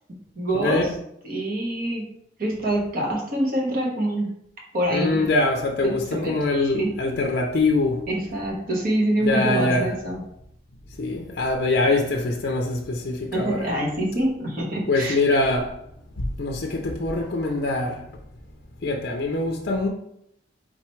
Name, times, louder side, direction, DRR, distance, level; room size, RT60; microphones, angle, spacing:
voice 1, 0.3-0.9 1.2-2.1 2.4-4.3 4.7-5.3 5.8-6.4 6.7-7.0 8.1-10.2 13.3-15.2, right 1 dB, 50° right, 1.2 m, -25 dB
voice 2, 4.9-8.1 9.2-9.9 11.0-13.7 14.9-15.8 16.2-18.1 18.8-19.9, left 2 dB, 55° left, 0.5 m, -23 dB
4.5 x 3.8 x 3.1 m
head